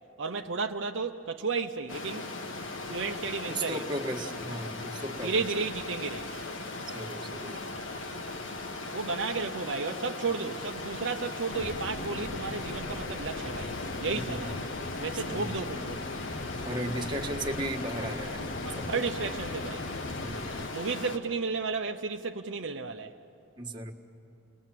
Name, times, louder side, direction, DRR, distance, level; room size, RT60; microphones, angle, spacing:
voice 1, 0.2-2.3 2.9-3.8 5.2-6.4 8.9-13.7 14.0-14.6 15.0-16.0 18.6-19.9 20.7-23.1, right 4 dB, 65° right, 0.7 m, -33 dB
Stream, 1.9-21.2, left 2 dB, 75° left, 1.5 m, -39 dB
voice 2, 3.5-5.4 6.9-7.6 14.1-14.5 15.1-15.5 16.6-18.4 18.7-19.0 20.2-20.7 23.6-23.9, right 1 dB, 25° right, 1.5 m, -36 dB
sound 1, 11.5-20.7, left 2 dB, 50° left, 0.7 m, -39 dB
29.0 x 21.0 x 7.5 m
head